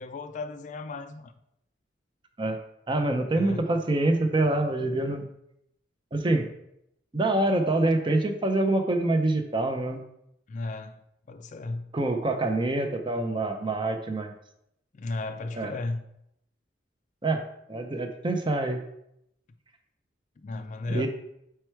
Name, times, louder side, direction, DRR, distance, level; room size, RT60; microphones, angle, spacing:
voice 1, 0.0-1.3 3.3-3.6 10.5-11.0 11.3-11.9 14.9-16.0 20.4-21.1, left 2 dB, 40° left, 0.3 m, -34 dB
voice 2, 2.9-5.3 6.1-6.5 7.1-10.0 11.9-14.3 15.6-15.7 17.2-17.4 17.7-18.8 20.9-21.1, right 2 dB, 25° right, 0.6 m, -25 dB
4.7 x 4.5 x 4.5 m
head